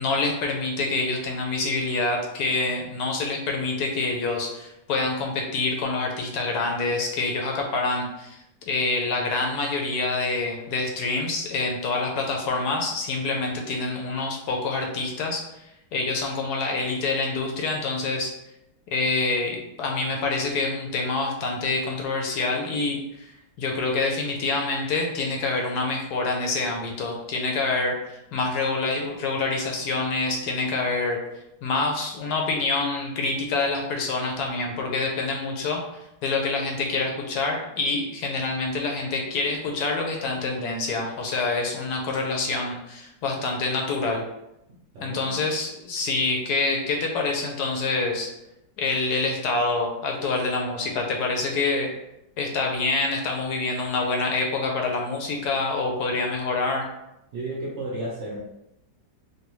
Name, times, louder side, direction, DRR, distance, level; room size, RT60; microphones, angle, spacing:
voice 1, 0.0-18.3 18.9-31.2 31.6-35.8 36.2-44.2 45.0-48.3 48.8-51.9 52.4-56.9, left 3 dB, 75° left, 1 dB, 1.1 m, -26 dB
voice 2, 44.9-45.4 57.3-58.4, right 2 dB, 65° right, -5 dB, 0.7 m, -33 dB
3.3 x 2.2 x 3.0 m, 0.87 s
omnidirectional pair, 1.8 m